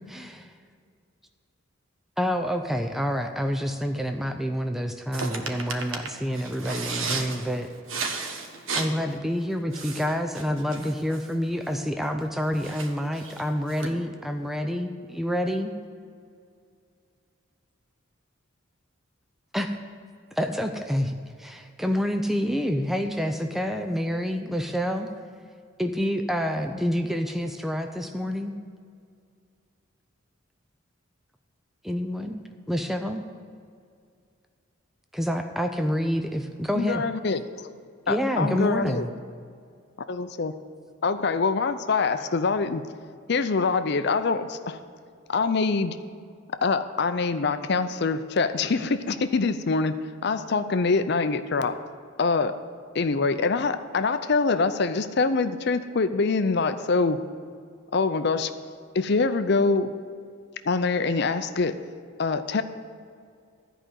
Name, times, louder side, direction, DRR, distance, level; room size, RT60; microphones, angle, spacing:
voice 1, 0.1-0.5 2.2-7.7 8.8-15.7 19.5-19.8 20.3-25.1 25.8-28.5 31.8-33.2 35.1-37.0 38.1-39.1, equal, ahead, 5 dB, 0.5 m, -28 dB
voice 2, 5.1-5.8 6.3-8.9 9.7-10.0 10.3-10.8 12.6-13.4 13.8-13.9, right 4 dB, 75° right, 3 dB, 1.5 m, -34 dB
voice 3, 36.7-37.7 38.1-39.1 40.2-40.5 41.0-42.8 43.3-44.8 45.3-46.0 46.6-49.9 50.2-51.7 52.2-52.5 52.9-57.2 57.9-58.5 58.9-59.9 60.6-61.8 62.2-62.6, left 4 dB, 55° left, 11 dB, 0.5 m, -24 dB
13.5 x 5.0 x 9.1 m, 2.3 s
head